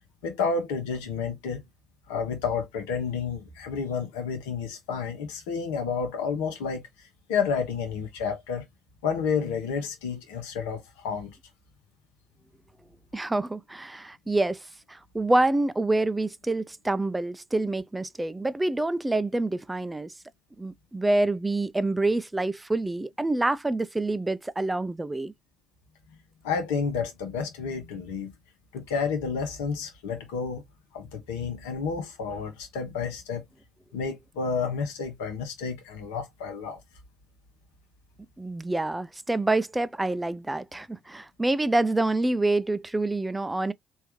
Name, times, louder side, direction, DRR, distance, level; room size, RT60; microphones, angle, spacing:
voice 1, 0.2-1.6 2.1-8.6 9.0-11.4 26.4-28.3 28.7-30.6 30.9-33.4 33.9-36.8, left 5 dB, 80° left, 1.1 m, -30 dB
voice 2, 13.1-14.6 14.9-20.1 20.6-25.3 38.4-43.7, right 2 dB, 15° right, 0.4 m, -27 dB
3.4 x 2.7 x 3.0 m
hypercardioid pair, 50°, 0 cm